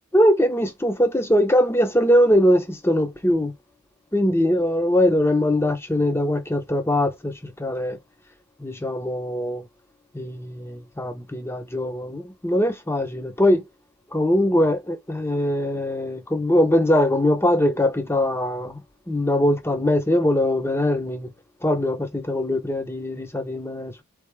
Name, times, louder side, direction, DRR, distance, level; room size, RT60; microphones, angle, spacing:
voice 1, 0.1-3.5 4.1-8.0 8.6-9.6 10.1-13.6 14.1-18.8 19.1-21.3 21.6-24.0, left 1 dB, 10° left, 0.7 m, -21 dB
4.3 x 3.4 x 3.1 m
head